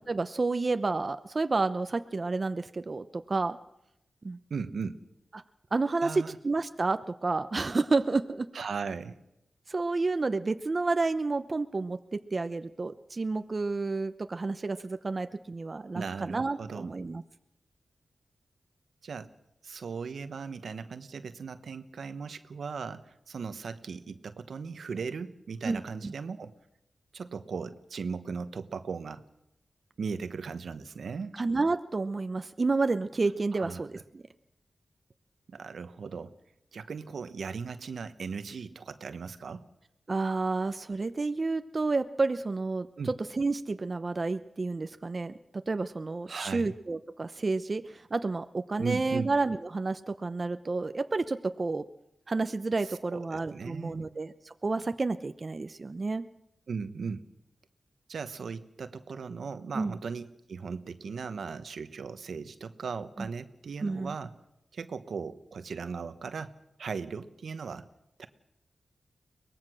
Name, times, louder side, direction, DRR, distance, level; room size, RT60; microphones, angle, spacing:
voice 1, 0.1-3.6 4.2-4.4 5.3-5.4 5.7-8.5 9.7-17.2 25.6-26.1 31.3-34.2 40.1-45.3 45.7-51.8 52.3-56.3 59.7-59.9 63.8-64.1, right 3 dB, 40° right, 10 dB, 0.8 m, -30 dB
voice 2, 4.5-5.0 6.0-6.4 8.5-9.2 15.9-16.9 19.0-19.3 19.6-26.5 27.1-29.2 30.0-31.4 33.5-33.8 35.5-36.3 36.7-39.6 43.0-43.1 46.3-46.7 48.8-49.3 52.8-54.2 56.7-57.2 58.1-64.3 64.7-66.5 66.8-67.9 68.2-68.3, right 5 dB, 80° right, 11 dB, 1.1 m, -37 dB
23.0 x 19.0 x 6.3 m, 0.84 s
cardioid pair, 70°, 0 cm